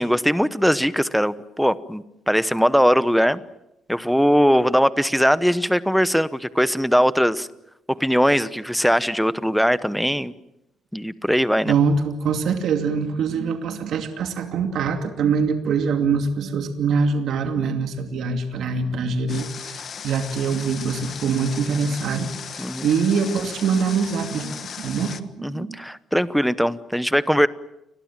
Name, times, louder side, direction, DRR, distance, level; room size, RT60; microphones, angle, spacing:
voice 1, 0.0-3.4 3.9-7.5 7.9-10.3 10.9-11.8 19.3-19.4 22.6-22.9 25.4-27.5, equal, ahead, 15 dB, 0.9 m, -20 dB
voice 2, 11.6-25.8, right 5 dB, 65° right, 6 dB, 2.6 m, -24 dB
Water, 19.3-25.2, left 7 dB, 45° left, 1.4 m, -36 dB
29.5 x 21.5 x 7.5 m, 0.86 s
cardioid pair, 140°, 0 cm